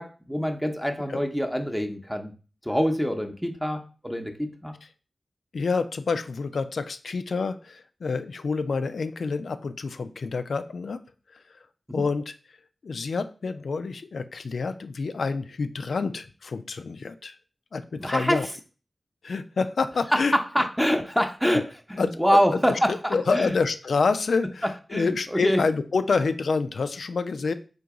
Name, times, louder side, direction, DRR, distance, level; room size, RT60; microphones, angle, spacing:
voice 1, 0.0-2.3 2.6-4.7 11.9-12.0 18.0-18.5 20.3-23.5 24.9-25.6, equal, ahead, 4 dB, 0.7 m, -25 dB
voice 2, 5.5-11.0 11.9-12.3 12.8-17.4 17.7-18.5 19.2-20.3 22.0-22.4 23.1-27.5, left 4 dB, 85° left, 10 dB, 0.3 m, -27 dB
3.9 x 2.8 x 4.7 m, 0.37 s
cardioid pair, 55°, 0 cm